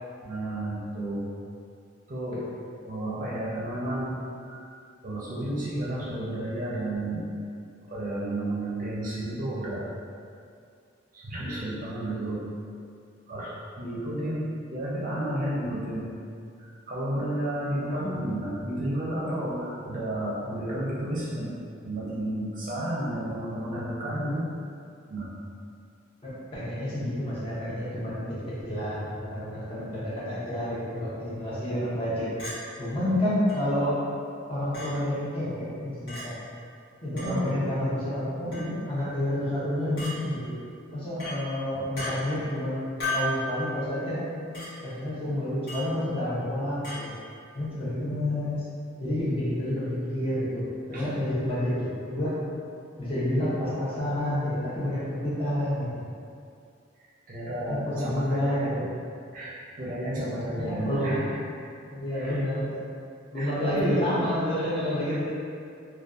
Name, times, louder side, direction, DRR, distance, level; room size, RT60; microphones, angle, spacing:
voice 1, 0.2-1.3 2.1-2.4 2.8-4.2 4.4-4.7 5.0-7.3 7.9-9.8 11.1-12.4 13.3-16.1 16.6-21.5 21.8-24.5 25.1-25.3 37.3-37.7 41.7-41.8 50.9-51.2 57.3-58.8 59.3-61.2 62.1-62.4 63.3-64.0 65.1-65.2, right 1 dB, 40° right, -7 dB, 0.5 m, -32 dB
voice 2, 26.2-28.2 28.6-32.3 32.8-34.0 34.5-36.4 37.0-40.5 40.9-44.6 44.8-47.1 47.5-48.6 49.0-50.6 50.9-52.4 53.0-56.0 57.7-58.8 60.6-61.2 61.9-62.7 63.3-65.3, left 1 dB, 30° left, -9 dB, 0.6 m, -29 dB
Chink clink, 32.4-32.6 33.5-33.6 34.7-34.9 36.1-36.2 37.2-37.3 38.5-38.7 40.0-40.1 41.2-41.4 42.0-42.1 43.0-43.4 44.5-44.7 45.7-45.9 46.8-47.0, left 1 dB, 55° left, 1.0 m, -33 dB
2.5 x 2.2 x 2.4 m, 2.4 s
head